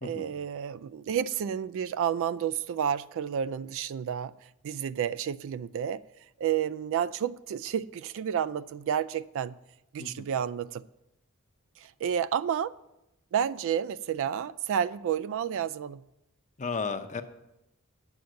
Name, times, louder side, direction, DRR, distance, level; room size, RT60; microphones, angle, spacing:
voice 1, 0.0-4.3 4.6-6.0 6.4-9.6 9.9-10.8 11.8-12.7 13.3-16.0, right 8 dB, 65° right, 0.3 m, -30 dB
voice 2, 16.6-17.2, left 4 dB, 35° left, 0.7 m, -34 dB
9.0 x 6.9 x 6.4 m
head